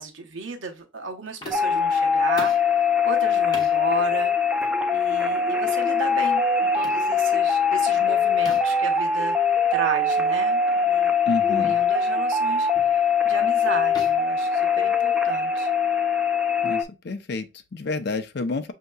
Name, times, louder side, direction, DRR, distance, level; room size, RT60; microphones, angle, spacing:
voice 1, 0.0-4.3 4.9-9.4 9.7-11.1 11.5-15.7, right 3 dB, 80° right, 1.0 m, -33 dB
sound 1, 1.4-1.8 2.4-2.7 3.5-3.8 4.6-4.8 5.6-5.8 6.8-7.1 8.5-8.8 10.1-10.2 10.7-10.8 11.6-11.8 12.7-13.0 13.9-15.2, left 1 dB, 20° left, 0.7 m, -40 dB
sound 2, 1.5-16.8, left 5 dB, 5° right, 0.4 m, -22 dB
voice 2, 11.3-11.8 16.6-18.7, left 3 dB, 55° left, 0.5 m, -29 dB
6.4 x 2.9 x 2.2 m
head